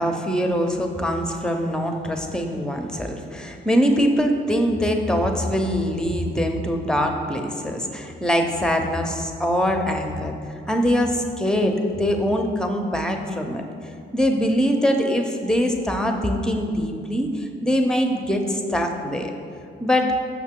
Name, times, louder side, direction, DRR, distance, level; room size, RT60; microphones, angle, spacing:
voice 1, 0.0-10.4 10.7-13.6 14.1-19.3 19.8-20.1, equal, 5° left, 4 dB, 0.6 m, -23 dB
5.9 x 5.7 x 3.7 m, 2.4 s
cardioid pair, 90°, 20 cm